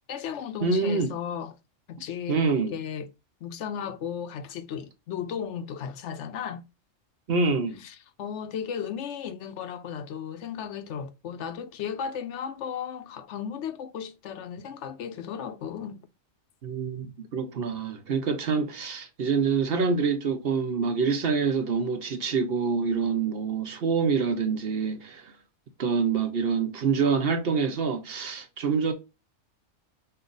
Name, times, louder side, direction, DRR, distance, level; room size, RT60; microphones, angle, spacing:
voice 1, 0.0-1.6 1.9-3.1 3.4-6.7 7.8-16.0, left 8 dB, 70° left, 0.9 m, -35 dB
voice 2, 0.6-1.1 2.3-2.7 7.3-7.8 16.6-25.3 25.8-28.9, right 5 dB, 55° right, 0.8 m, -26 dB
5.4 x 2.4 x 3.8 m
omnidirectional pair, 1.3 m